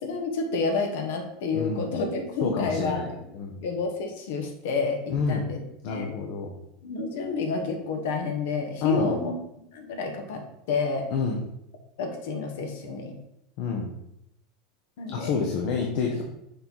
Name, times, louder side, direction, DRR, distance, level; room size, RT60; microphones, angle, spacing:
voice 1, 0.0-3.3 3.6-5.6 5.9-6.1 6.8-9.3 9.7-11.1 12.0-13.2 15.0-15.3 16.1-16.2, left 4 dB, 70° left, 4 dB, 1.2 m, -29 dB
voice 2, 1.5-1.9 2.4-3.1 3.3-3.6 5.1-5.5 5.8-6.5 8.8-9.1 11.1-11.4 13.6-13.9 15.1-16.2, left 5 dB, 50° left, 1 dB, 0.9 m, -28 dB
6.4 x 3.9 x 4.5 m, 0.79 s
supercardioid pair, 175°, 0 cm